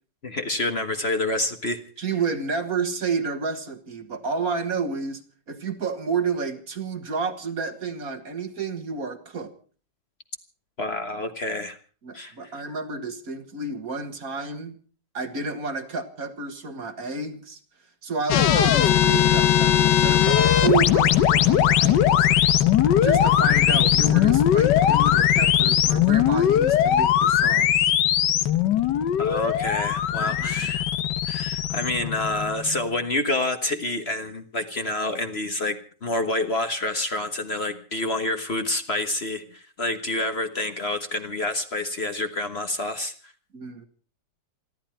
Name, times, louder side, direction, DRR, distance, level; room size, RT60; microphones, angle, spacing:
voice 1, 0.2-1.8 10.8-11.8 12.1-12.5 29.2-30.9 31.3-43.1, left 2 dB, 40° left, 7 dB, 1.5 m, -28 dB
voice 2, 2.0-5.2 5.5-9.5 12.0-14.8 15.1-17.6 18.0-22.3 23.0-27.9 30.2-30.7 43.5-43.9, right 4 dB, 55° right, 8 dB, 2.0 m, -30 dB
sound 1, 18.3-32.9, left 10 dB, 75° left, 1.6 m, -20 dB
28.0 x 11.5 x 4.4 m, 0.40 s
omnidirectional pair, 1.9 m